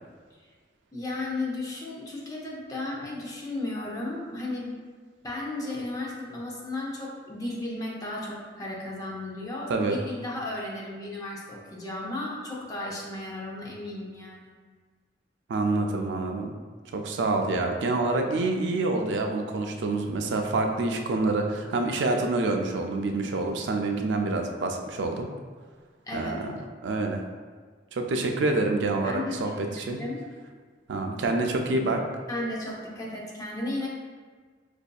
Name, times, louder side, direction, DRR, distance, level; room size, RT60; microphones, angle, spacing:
voice 1, 0.9-4.7 5.2-14.6 26.1-26.4 29.0-30.2 32.3-33.9, left 2 dB, 20° left, -4 dB, 0.6 m, -34 dB
voice 2, 9.7-10.0 15.5-16.5 16.9-25.3 26.1-26.5 26.8-27.2 27.9-30.0 30.9-32.0, right 2 dB, 80° right, 3 dB, 0.4 m, -27 dB
4.9 x 2.6 x 2.2 m, 1.5 s
head